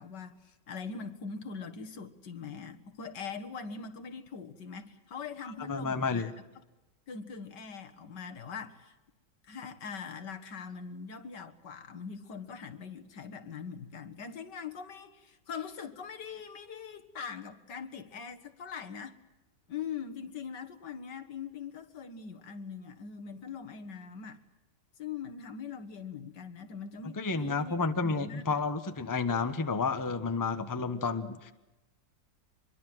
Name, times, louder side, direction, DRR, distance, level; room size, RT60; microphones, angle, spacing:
voice 1, 0.0-6.3 7.1-8.9 9.4-19.2 19.7-24.4 25.0-28.6, left 6 dB, 75° left, 8 dB, 2.2 m, -42 dB
voice 2, 5.7-6.3 27.1-31.5, left 4 dB, 15° left, 9 dB, 1.0 m, -31 dB
25.5 x 22.5 x 7.8 m, 1.0 s
omnidirectional pair, 1.9 m